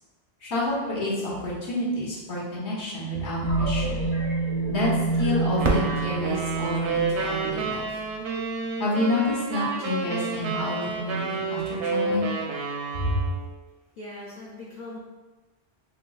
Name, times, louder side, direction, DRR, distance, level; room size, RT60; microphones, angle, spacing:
voice 1, 0.4-4.0 4.7-8.0 8.8-12.3 12.9-13.1, left 1 dB, 75° left, -5 dB, 1.3 m, -29 dB
sound 1, 3.4-8.1, right 3 dB, 35° left, 1.1 m, -27 dB
Fireworks, 5.6-8.4 9.1-9.2 9.8-10.3 12.2-12.3, right 2 dB, 40° right, 0.4 m, -32 dB
sound 2, 5.6-13.5, right 4 dB, 90° right, 0.9 m, -30 dB
voice 2, 14.0-15.0, left 2 dB, 50° left, -7 dB, 0.6 m, -40 dB
4.2 x 3.0 x 2.3 m, 1.2 s
omnidirectional pair, 1.1 m